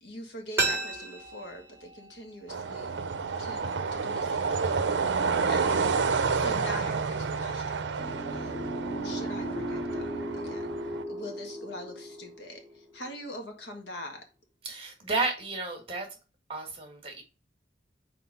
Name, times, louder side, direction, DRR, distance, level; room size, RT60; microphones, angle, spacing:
voice 1, 0.0-3.0 3.4-14.2, left 1 dB, 80° left, 1.6 m, -43 dB
sound 1, 0.6-3.4 3.7-3.8, right 3 dB, 15° right, 1.6 m, -34 dB
sound 2, 2.5-11.0, right 5 dB, 75° right, 0.6 m, -30 dB
sound 3, 8.0-13.1, equal, 10° left, 2.1 m, -36 dB
voice 2, 14.6-16.1 16.5-17.2, right 3 dB, 30° right, 1.7 m, -32 dB
4.5 x 4.0 x 5.4 m
head